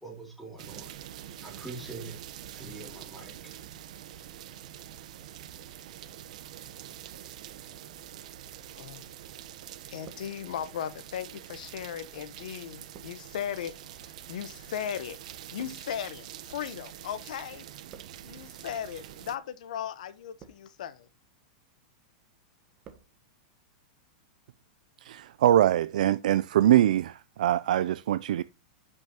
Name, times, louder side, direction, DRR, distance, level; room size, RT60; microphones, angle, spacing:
voice 1, 0.0-0.9 1.4-2.2 2.5-3.6, right 3 dB, ahead, 2.7 m, -43 dB
sound 1, 0.6-19.4, right 11 dB, 65° right, 0.8 m, -45 dB
voice 2, 8.7-9.0 9.9-15.2 15.5-17.7 18.2-21.1, left 9 dB, 75° left, 1.0 m, -37 dB
sound 2, 10.0-10.8 11.5-17.2 17.4-18.5 19.2-19.5 20.1-20.9 21.4-21.8 22.2-23.1 23.4-23.5, right 8 dB, 30° right, 1.1 m, -56 dB
voice 3, 25.0-28.4, right 12 dB, 80° right, 0.3 m, -23 dB
10.0 x 6.2 x 2.9 m
supercardioid pair, 160°, 4 cm